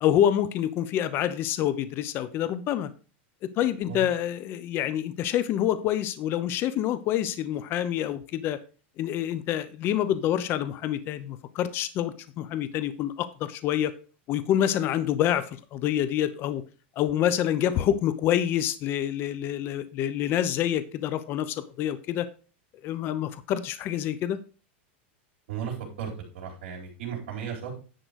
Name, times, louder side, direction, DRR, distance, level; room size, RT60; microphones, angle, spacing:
voice 1, 0.0-2.9 3.6-8.6 9.0-13.9 14.3-16.6 17.0-22.3 22.8-24.4, left 11 dB, 35° left, 13 dB, 0.8 m, -27 dB
voice 2, 25.5-27.7, right 8 dB, 75° right, -4 dB, 3.0 m, -35 dB
10.5 x 3.9 x 6.3 m, 0.36 s
supercardioid pair, 145°, 6 cm